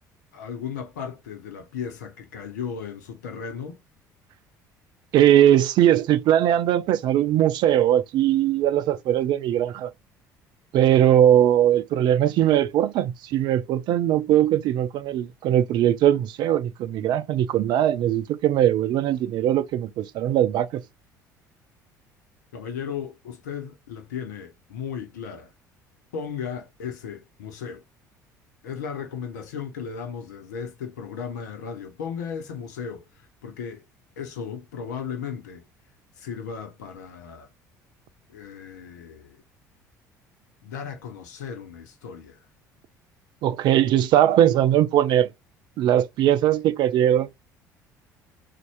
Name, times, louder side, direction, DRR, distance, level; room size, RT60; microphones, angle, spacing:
voice 1, 0.3-3.8 22.5-25.5 26.1-27.8 28.6-33.1 33.4-33.8 34.2-35.7 36.2-37.5 38.3-39.4 40.6-42.4, left 7 dB, 70° left, 0.9 m, -35 dB
voice 2, 5.1-9.9 10.7-20.8 43.4-45.3 45.8-47.3, right 11 dB, 50° right, 0.5 m, -20 dB
4.1 x 2.4 x 4.5 m
figure-of-eight pair, 55°, 10 cm